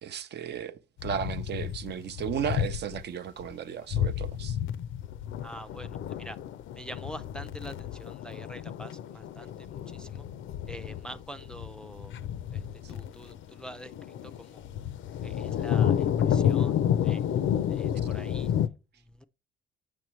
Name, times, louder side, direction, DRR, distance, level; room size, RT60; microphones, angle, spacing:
voice 1, 0.0-4.6, right 8 dB, 60° right, 0.6 m, -34 dB
sound 1, 1.0-3.0 3.4-3.5 3.9-18.7, left 9 dB, 75° left, 0.5 m, -30 dB
voice 2, 5.4-6.4 6.7-10.3 10.7-12.1 12.5-14.6 15.2-17.3 17.7-18.5 19.0-19.2, equal, 5° left, 0.4 m, -45 dB
7.4 x 6.0 x 3.1 m
cardioid pair, 90°, 20 cm